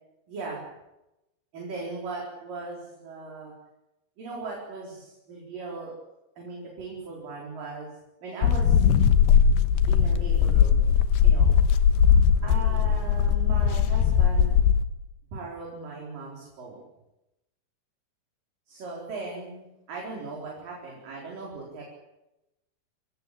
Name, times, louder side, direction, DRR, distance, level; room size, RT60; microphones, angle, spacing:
voice 1, 0.3-0.6 1.5-3.5 4.2-5.9 6.4-7.9 8.2-8.8 9.9-10.9 11.2-11.5 12.4-14.6 15.3-16.8 18.7-19.6 19.9-21.8, right 3 dB, 50° right, -2 dB, 5.8 m, -38 dB
sound 1, 8.4-14.8, left 7 dB, 75° left, 3.0 m, -20 dB
26.5 x 17.5 x 8.6 m, 0.95 s
omnidirectional pair, 5.0 m